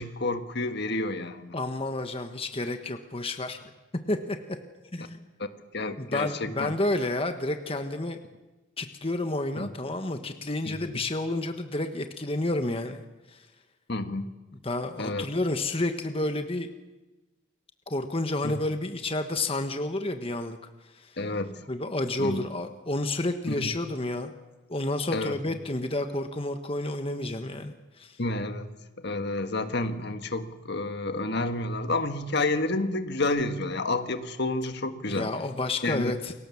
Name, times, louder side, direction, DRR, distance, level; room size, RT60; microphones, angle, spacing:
voice 1, 0.0-1.5 5.4-5.5 5.7-6.7 9.6-9.7 10.6-11.0 13.9-14.3 15.0-15.3 18.4-18.6 21.2-21.6 22.2-22.4 23.5-23.7 25.1-25.3 28.2-28.7 29.0-35.3 35.8-36.2, left 2 dB, 55° left, 8 dB, 1.6 m, -30 dB
voice 2, 1.5-3.7 4.1-4.6 4.9-5.2 6.0-8.2 8.8-13.0 13.3-13.4 14.6-16.7 17.9-20.6 21.0-21.1 21.7-24.3 24.7-28.2 35.1-36.3, left 2 dB, 25° left, 7 dB, 1.3 m, -30 dB
29.0 x 23.5 x 7.2 m, 1.1 s
head